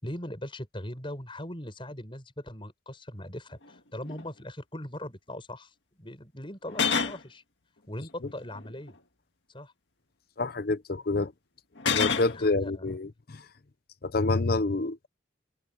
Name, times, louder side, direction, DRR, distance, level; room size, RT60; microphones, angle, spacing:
voice 1, 0.0-7.4 7.9-8.9 9.5-9.7 12.3-12.9, left 1 dB, 25° left, 7.0 m, -40 dB
sound 1, 3.6-3.7 4.0-4.2 6.7-7.2 8.4-8.9 11.8-12.4, left 6 dB, 70° left, 2.0 m, -28 dB
voice 2, 10.4-11.3 11.9-13.4 14.0-15.1, left 3 dB, 50° left, 0.7 m, -27 dB
head